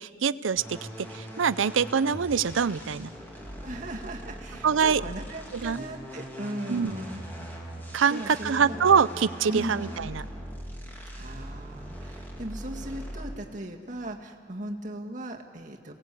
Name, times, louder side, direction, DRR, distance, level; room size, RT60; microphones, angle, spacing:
voice 1, 0.0-3.1 4.6-5.0 5.5-5.8 6.7-7.0 7.9-10.2, right 6 dB, 90° right, 17 dB, 0.6 m, -25 dB
sound 1, 0.6-13.5, equal, 10° left, 3.2 m, -40 dB
voice 2, 3.6-7.2 8.1-8.8 9.5-9.8 11.1-15.9, right 1 dB, 40° right, 2 dB, 1.9 m, -37 dB
29.0 x 19.0 x 8.4 m, 2.3 s
head